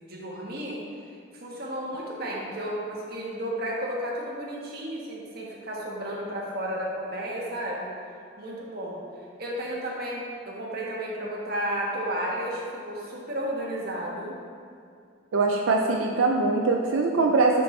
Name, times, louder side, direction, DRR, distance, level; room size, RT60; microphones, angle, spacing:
voice 1, 0.0-0.8 1.4-7.9 8.4-9.0 9.4-14.3, equal, 50° right, -3 dB, 1.3 m, -32 dB
voice 2, 15.3-17.6, right 3 dB, 90° right, 1 dB, 0.5 m, -22 dB
10.0 x 4.5 x 3.2 m, 2.4 s
head